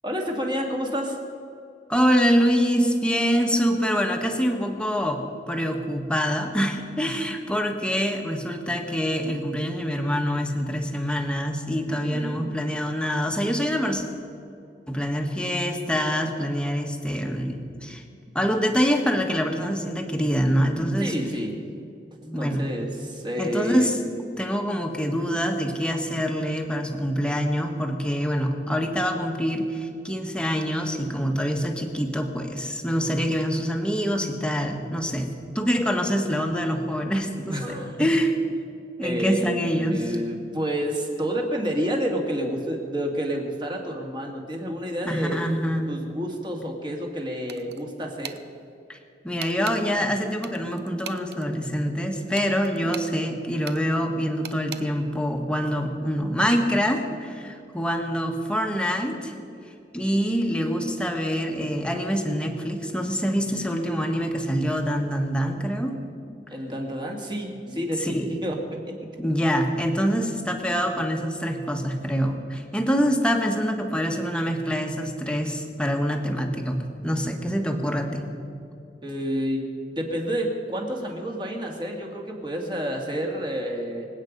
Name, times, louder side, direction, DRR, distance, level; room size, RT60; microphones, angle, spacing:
voice 1, 0.0-1.2 7.0-7.1 11.9-12.5 21.0-21.6 22.4-24.0 37.5-37.9 39.0-45.4 45.9-48.4 66.5-69.0 79.0-84.1, equal, 25° right, 1 dB, 2.3 m, -29 dB
voice 2, 1.9-14.1 14.9-18.0 18.3-21.2 22.2-22.7 23.4-24.0 24.4-35.3 35.5-38.3 39.0-40.2 45.0-45.9 48.9-49.0 49.2-59.3 59.9-66.0 67.7-68.3 69.2-76.8 77.0-78.2, equal, 5° left, 3 dB, 1.4 m, -25 dB
sound 1, 47.5-47.8 48.2-48.4 49.4-49.8 50.4-51.4 52.3-53.1 53.6-53.8 54.4-54.8, right 8 dB, 65° right, 0.7 m, -38 dB
25.5 x 8.9 x 5.3 m, 2.5 s
head